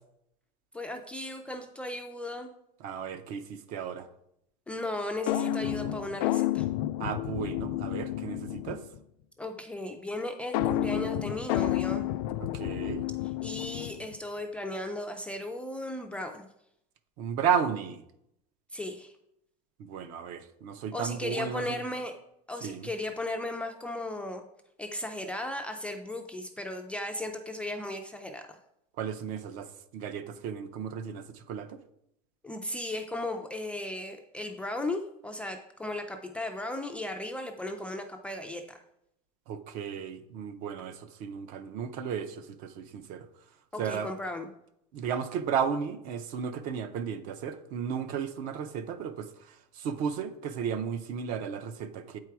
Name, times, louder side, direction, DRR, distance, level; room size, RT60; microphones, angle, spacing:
voice 1, 0.7-2.5 4.7-6.7 9.4-12.1 13.4-16.5 18.7-19.1 20.9-22.1 22.5-24.4 24.8-28.6 32.4-38.8 43.7-44.5, left 1 dB, 5° left, 4 dB, 0.3 m, -36 dB
voice 2, 2.8-4.1 7.0-8.8 12.4-13.0 17.2-18.0 19.8-21.6 22.6-22.9 29.0-31.8 39.5-43.2 43.8-44.1 44.9-49.3 49.8-52.2, right 7 dB, 50° right, 11 dB, 0.6 m, -34 dB
sound 1, 5.3-9.0 10.5-14.1, left 13 dB, 85° left, 0.4 m, -30 dB
8.3 x 4.6 x 4.6 m, 0.78 s
cardioid pair, 175°, 18 cm